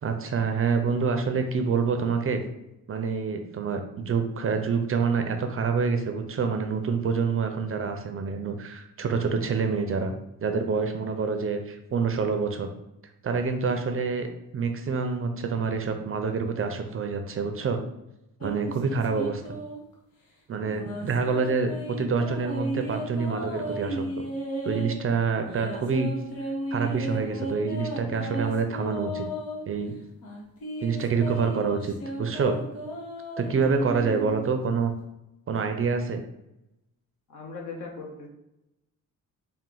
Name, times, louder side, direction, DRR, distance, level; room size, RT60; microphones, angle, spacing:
voice 1, 0.0-2.4 2.9-10.1 10.4-12.7 13.2-14.3 14.5-17.8 18.4-19.4 20.5-21.7 22.0-24.0 24.6-26.1 26.7-29.3 29.7-30.0 30.8-32.6 33.4-34.9 35.5-36.2, right 5 dB, 40° right, 6 dB, 0.5 m, -27 dB
sound 1, 18.4-19.9 20.6-25.0 25.5-29.6 30.2-34.5, right 1 dB, 80° left, 1.1 m, -34 dB
voice 2, 33.5-34.2 37.3-38.3, left 3 dB, 60° left, -1 dB, 1.1 m, -38 dB
4.2 x 2.1 x 3.8 m, 0.88 s
cardioid pair, 90°, 34 cm